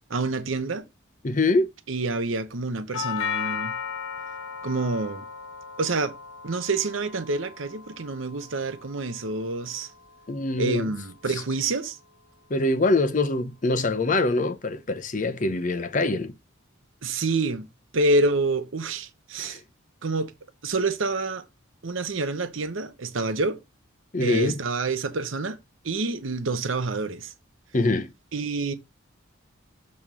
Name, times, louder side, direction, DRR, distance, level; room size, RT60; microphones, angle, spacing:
voice 1, 0.1-0.8 1.9-3.7 4.6-5.3 5.8-6.1 6.4-9.9 10.6-12.0 17.0-17.7 17.9-19.6 20.0-20.3 20.6-21.4 21.8-23.6 24.2-25.6 25.8-27.3 28.3-28.7, right 3 dB, 80° right, 0.9 m, -27 dB
voice 2, 1.2-1.7 10.3-10.9 12.5-16.3 19.4-19.6 24.1-24.6 27.7-28.1, left 2 dB, 40° left, 0.7 m, -24 dB
Doorbell, 2.9-11.0, left 7 dB, 80° left, 0.8 m, -36 dB
7.2 x 3.2 x 6.1 m
head